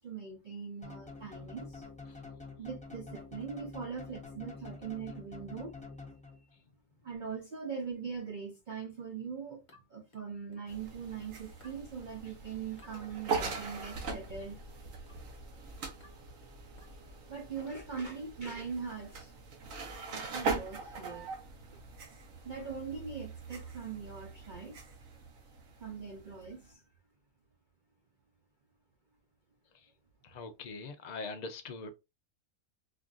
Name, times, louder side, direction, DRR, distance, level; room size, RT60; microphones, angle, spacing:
voice 1, 0.0-1.9 2.6-5.8 7.0-9.6 9.9-14.6 17.3-19.3 20.1-21.3 22.4-24.8 25.8-26.8, right 6 dB, 45° right, 0.6 m, -41 dB
sound 1, 0.8-6.6, left 3 dB, 10° left, 0.5 m, -47 dB
sound 2, 9.7-10.8 11.6-11.9 12.8-13.0 13.9-14.2 15.1-15.3 16.0-16.3 16.8-17.0 17.9-18.2, left 2 dB, 25° left, 0.9 m, -61 dB
sound 3, 10.7-26.7, right 4 dB, 75° right, 1.3 m, -41 dB
voice 2, 30.2-31.9, left 3 dB, 70° left, 0.4 m, -42 dB
4.3 x 2.4 x 2.4 m
omnidirectional pair, 1.4 m